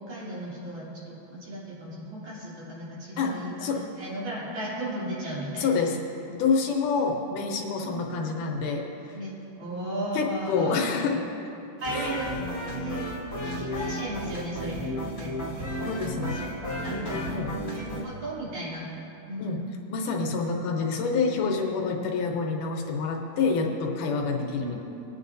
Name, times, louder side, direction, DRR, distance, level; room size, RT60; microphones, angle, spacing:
voice 1, 0.0-5.7 7.9-8.1 9.1-11.0 11.8-12.3 12.6-13.1 13.4-18.8 19.3-19.6 24.4-24.8, right 1 dB, 65° right, -8 dB, 4.5 m, -36 dB
voice 2, 3.2-3.8 5.6-6.0 6.3-9.2 10.1-11.2 11.9-12.1 15.8-16.4 17.3-17.5 19.4-19.6 19.9-24.8, left 4 dB, 85° left, 2 dB, 2.6 m, -27 dB
sound 1, 11.8-18.0, equal, 25° left, 1.6 m, -33 dB
20.5 x 9.3 x 2.7 m, 2.7 s
omnidirectional pair, 3.6 m